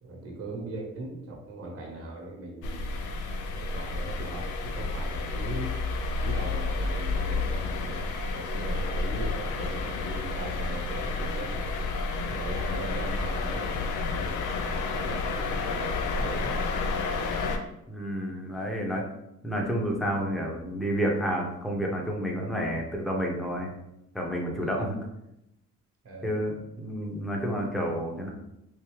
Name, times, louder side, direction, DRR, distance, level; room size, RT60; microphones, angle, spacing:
voice 1, 0.0-2.9 3.5-5.7 6.1-8.1 8.3-11.7 12.3-16.7 24.6-24.8 26.0-26.4, right 2 dB, 50° right, 0 dB, 1.0 m, -39 dB
sound 1, 2.6-17.6, left 3 dB, 80° left, 0.5 m, -30 dB
voice 2, 17.9-19.0 19.4-23.8 24.1-25.0 26.2-28.3, equal, ahead, -1 dB, 0.8 m, -30 dB
3.6 x 2.6 x 3.1 m, 0.85 s
cardioid pair, 90°, 30 cm